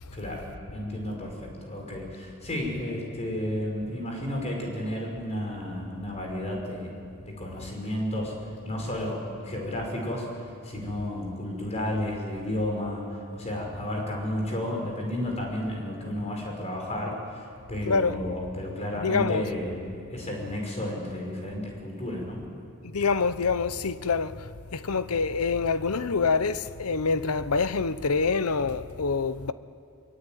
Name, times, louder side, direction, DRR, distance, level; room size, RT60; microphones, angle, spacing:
voice 1, 0.1-6.9 7.2-8.3 8.6-10.3 10.6-17.4 17.7-19.8 20.1-22.4, left 1 dB, 30° left, 5.7 m, -32 dB
voice 2, 17.9-18.2 19.0-19.5 22.8-29.5, left 4 dB, 85° left, 0.9 m, -26 dB
23.0 x 22.5 x 9.3 m
head